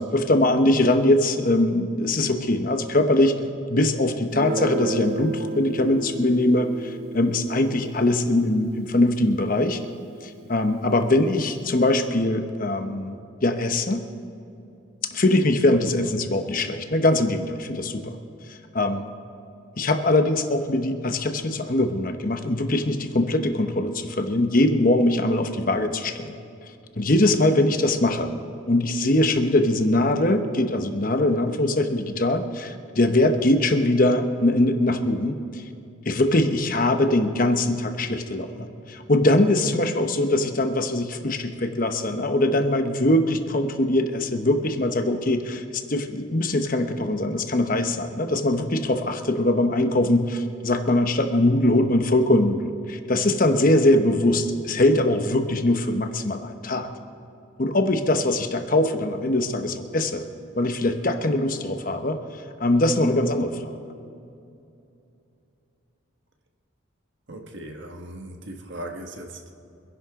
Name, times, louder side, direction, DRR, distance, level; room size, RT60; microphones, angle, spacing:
voice 1, 0.0-3.4 3.7-9.8 10.2-13.2 13.4-14.0 15.1-18.1 18.5-19.1 19.8-26.4 27.0-28.3 28.7-35.6 36.0-56.9 57.6-60.2 60.6-62.2 62.6-63.7, left 1 dB, 45° left, 6 dB, 1.0 m, -22 dB
Guitar, 4.3-9.8, right 2 dB, 50° right, 0.5 m, -33 dB
voice 2, 67.3-69.5, right 1 dB, 65° right, 3 dB, 1.5 m, -38 dB
25.0 x 11.0 x 3.7 m, 2.7 s
head